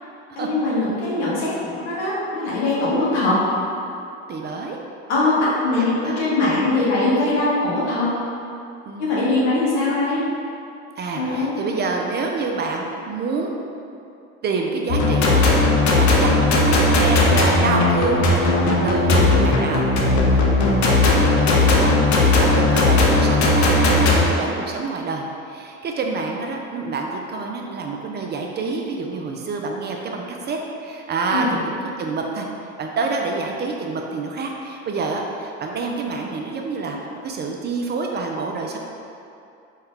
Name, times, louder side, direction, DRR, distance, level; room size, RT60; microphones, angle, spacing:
voice 1, 0.3-3.4 5.1-8.1 9.0-10.3 11.1-11.5 31.3-31.6, left 2 dB, 85° left, -7 dB, 1.2 m, -21 dB
voice 2, 4.3-4.8 5.7-6.3 8.8-9.3 11.0-13.6 14.4-15.4 15.7-18.3 18.6-19.9 20.2-32.5 32.8-38.8, right 3 dB, 30° right, 1 dB, 0.4 m, -27 dB
sound 1, 14.9-24.2, left 2 dB, 55° left, 0.7 m, -17 dB
4.2 x 2.2 x 3.7 m, 2.6 s
hypercardioid pair, 80°, 35 cm